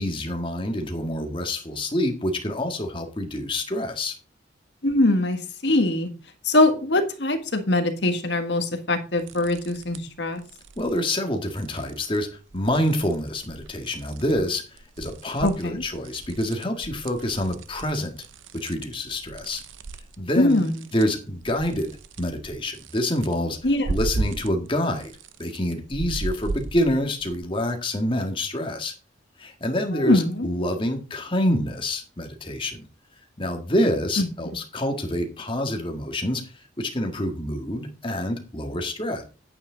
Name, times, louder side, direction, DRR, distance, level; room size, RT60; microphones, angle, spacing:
voice 1, 0.0-4.1 10.8-12.3 12.5-14.6 15.0-18.2 18.5-19.6 20.2-20.6 20.9-21.9 22.2-23.6 23.9-25.1 25.4-28.9 29.4-32.9 33.4-36.4 36.8-39.2, left 1 dB, 25° left, 4 dB, 1.8 m, -27 dB
voice 2, 4.8-6.1 6.4-10.4 15.4-15.8 20.3-20.9 23.6-23.9 29.9-30.5 34.2-34.3, left 2 dB, 65° left, 6 dB, 1.6 m, -22 dB
sound 1, 9.2-10.2 10.4-11.0 11.6-12.2 12.5-14.5 14.8-24.7 25.0-27.4, right 3 dB, 85° right, 0.7 m, -36 dB
9.9 x 8.7 x 3.9 m, 0.34 s
head